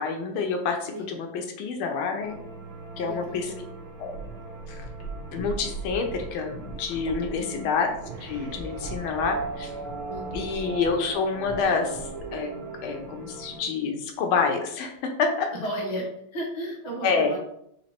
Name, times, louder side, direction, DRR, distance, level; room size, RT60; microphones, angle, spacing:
voice 1, 0.0-2.4 3.0-3.6 4.0-4.1 4.7-4.8 5.3-7.9 8.2-9.7 10.3-12.5 12.8-15.5 17.0-17.3, left 5 dB, 80° left, 4 dB, 1.6 m, -28 dB
sound 1, 2.2-13.6, right 1 dB, 65° right, 2.0 m, -44 dB
voice 2, 3.0-3.5 7.3-7.6 10.1-10.6 15.5-16.0 16.3-17.4, right 1 dB, 25° left, -3 dB, 1.0 m, -34 dB
sound 2, 4.1-11.1 11.4-11.7 11.9-12.4, right 2 dB, 50° left, 1.1 m, -40 dB
sound 3, 8.0-13.6, right 5 dB, 85° right, 1.4 m, -37 dB
4.3 x 2.9 x 4.2 m, 0.72 s
omnidirectional pair, 2.3 m